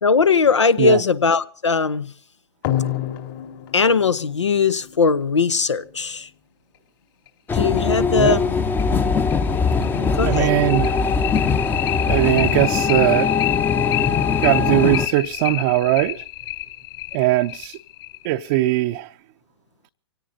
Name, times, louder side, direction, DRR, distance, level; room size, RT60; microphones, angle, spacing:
voice 1, 0.0-2.1 3.7-6.3 7.5-8.5 9.8-10.5, left 5 dB, 85° left, 1.0 m, -19 dB
sound 1, 2.6-5.8 7.3-7.4 7.8-7.9 8.3-8.4 8.8-18.8, left 15 dB, 50° left, 4.1 m, -29 dB
sound 2, 7.5-15.1, left 5 dB, 15° left, 0.8 m, -21 dB
voice 2, 10.2-11.0 12.1-13.3 14.4-16.2 17.1-17.8 18.2-19.1, right 16 dB, 45° right, 0.6 m, -20 dB
25.0 x 17.5 x 2.7 m
hypercardioid pair, 115°, 15 cm